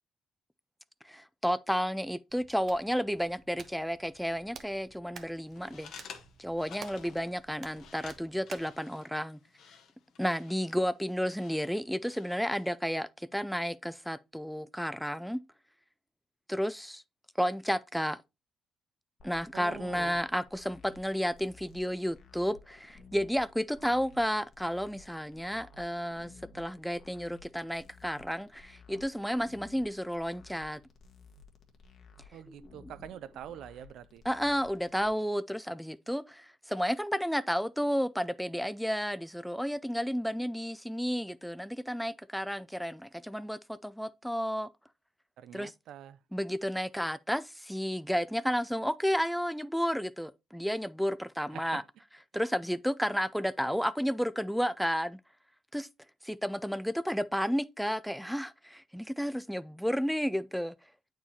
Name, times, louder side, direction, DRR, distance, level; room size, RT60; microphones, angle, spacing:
voice 1, 1.0-5.9 6.4-9.4 10.2-15.4 16.5-17.0 17.4-18.2 19.2-30.8 32.5-32.6 34.2-44.7 45.5-45.7 46.3-51.8 52.3-55.2 55.7-55.9 56.2-60.7, equal, ahead, 0.4 m, -32 dB
Hands, 2.3-8.8, right 6 dB, 55° right, 0.9 m, -52 dB
sound 1, 5.4-12.8, left 7 dB, 75° left, 1.2 m, -53 dB
sound 2, 19.2-35.1, left 4 dB, 60° left, 1.3 m, -56 dB
voice 2, 19.5-20.2 32.3-34.2 45.4-46.2 51.5-51.8, right 10 dB, 80° right, 0.4 m, -45 dB
8.4 x 4.7 x 2.9 m
cardioid pair, 90°, 0 cm